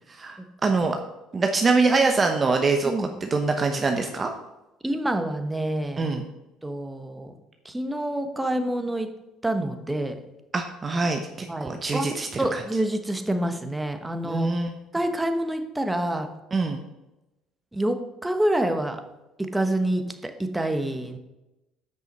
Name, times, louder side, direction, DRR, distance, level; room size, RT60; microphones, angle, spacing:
voice 1, 0.1-1.0 1.3-4.3 6.0-6.3 10.5-12.6 14.2-14.7 16.5-16.8, right 3 dB, 30° right, 4 dB, 0.9 m, -24 dB
voice 2, 4.8-6.1 6.6-7.3 7.6-9.1 9.4-10.1 11.5-12.1 12.4-14.5 14.9-16.3 17.7-19.0 19.4-21.2, right 1 dB, 10° right, 7 dB, 1.2 m, -27 dB
8.1 x 6.2 x 5.3 m, 0.97 s
supercardioid pair, 90°, 0 cm